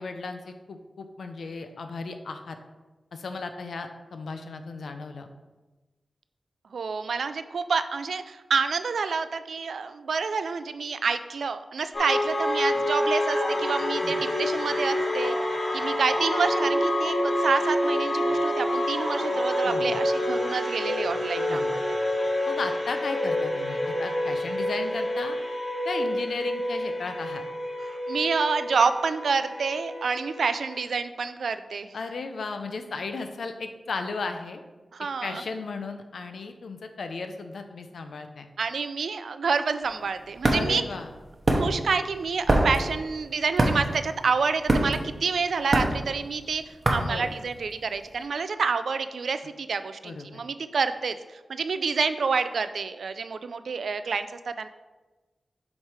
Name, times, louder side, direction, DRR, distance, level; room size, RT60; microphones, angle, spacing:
voice 1, 0.0-2.6 3.1-5.3 14.0-14.1 19.6-19.9 21.5-21.7 22.5-25.4 25.8-27.4 31.9-34.6 35.2-38.5 40.5-41.1 47.0-47.3 50.0-50.4, left 4 dB, 85° left, 6 dB, 0.6 m, -35 dB
voice 2, 6.7-15.4 15.7-21.8 27.8-32.0 34.9-35.4 38.6-40.8 41.5-54.7, right 5 dB, 85° right, 11 dB, 0.3 m, -28 dB
sound 1, 11.9-30.8, left 1 dB, 35° left, 1.2 m, -27 dB
sound 2, 39.8-48.0, right 1 dB, 35° right, 0.9 m, -26 dB
7.2 x 3.2 x 4.8 m, 1.2 s
wide cardioid pair, 100°, 0 cm